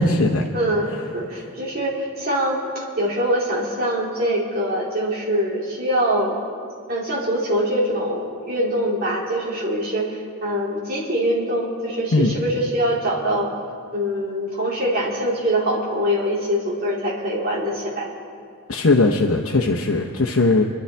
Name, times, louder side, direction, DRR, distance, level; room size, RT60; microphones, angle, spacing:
voice 1, 0.0-0.4 12.1-12.3 18.7-20.6, left 2 dB, 75° left, 1 dB, 0.8 m, -18 dB
voice 2, 0.5-6.3 6.9-13.5 13.9-18.1, equal, 45° right, -4 dB, 2.6 m, -23 dB
26.0 x 11.5 x 3.4 m, 2.2 s
head